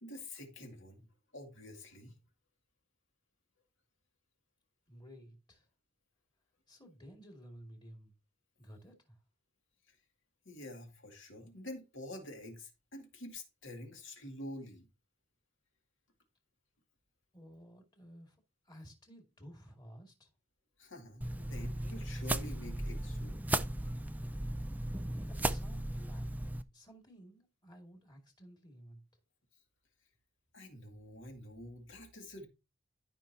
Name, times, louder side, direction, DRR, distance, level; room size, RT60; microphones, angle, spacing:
voice 1, 0.0-1.0 1.3-2.1 9.9-10.0 10.5-14.9 20.8-23.4 30.5-32.5, left 1 dB, 75° left, 2.4 m, -47 dB
voice 2, 4.9-5.7 6.7-8.1 8.6-9.2 17.3-18.4 18.7-20.3 25.3-26.3 26.7-29.0, equal, 20° left, 2.3 m, -54 dB
sound 1, 21.2-26.6, right 1 dB, 10° right, 0.4 m, -36 dB
13.0 x 5.5 x 2.8 m
head